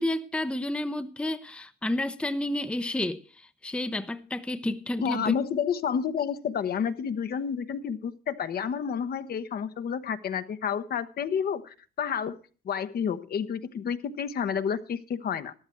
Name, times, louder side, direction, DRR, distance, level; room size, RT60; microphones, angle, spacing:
voice 1, 0.0-5.2, left 1 dB, 5° left, 0.7 m, -30 dB
voice 2, 5.0-12.4 12.6-15.5, left 7 dB, 50° left, 1.0 m, -30 dB
13.5 x 12.0 x 4.5 m
cardioid pair, 105°, 20 cm